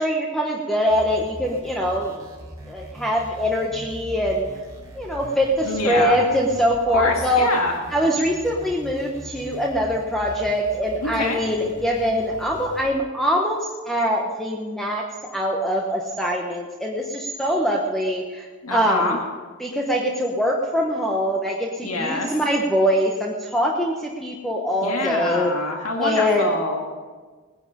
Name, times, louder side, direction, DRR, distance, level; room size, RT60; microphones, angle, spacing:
voice 1, 0.0-2.2 2.7-4.4 4.9-7.5 7.9-15.0 15.3-19.2 19.6-25.5 26.0-26.5, equal, ahead, -1 dB, 1.0 m, -23 dB
sound 1, 0.9-12.9, equal, 15° right, 3.4 m, -41 dB
voice 2, 5.6-6.1 6.9-7.7 11.0-11.4 18.6-19.2 21.8-22.3 24.8-26.8, left 2 dB, 90° left, 1 dB, 1.9 m, -25 dB
19.0 x 10.5 x 5.1 m, 1.4 s
head